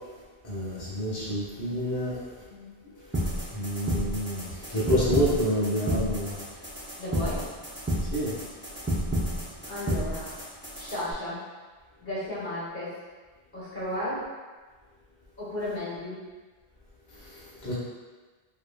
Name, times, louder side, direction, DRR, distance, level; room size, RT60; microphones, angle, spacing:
voice 1, 0.4-2.2 3.5-6.3 8.1-8.4 17.6-17.7, equal, 20° left, -9 dB, 0.8 m, -28 dB
voice 2, 2.5-2.9 7.0-7.4 9.7-10.2 10.8-11.4 12.0-12.9 13.5-14.3 15.4-16.2, left 1 dB, 50° left, -10 dB, 1.0 m, -34 dB
sound 1, 3.1-11.1, equal, 15° right, 0.4 m, -31 dB
3.1 x 2.7 x 2.2 m, 1.4 s
omnidirectional pair, 1.1 m